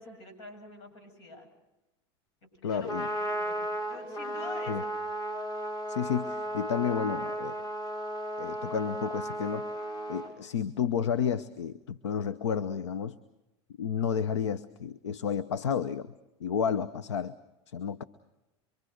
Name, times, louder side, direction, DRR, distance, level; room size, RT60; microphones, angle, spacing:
voice 1, 0.0-1.5 2.6-2.9 3.2-4.9, left 2 dB, 75° left, 7 dB, 7.7 m, -46 dB
voice 2, 2.6-3.1 4.7-4.8 5.9-7.6 8.4-9.7 10.1-13.2 13.8-16.1 16.4-17.3 17.7-18.0, left 7 dB, 90° left, 14 dB, 0.9 m, -31 dB
Trumpet, 2.7-10.3, right 1 dB, 30° left, 6.2 m, -34 dB
26.0 x 24.5 x 6.5 m, 0.98 s
hypercardioid pair, 100°, 15 cm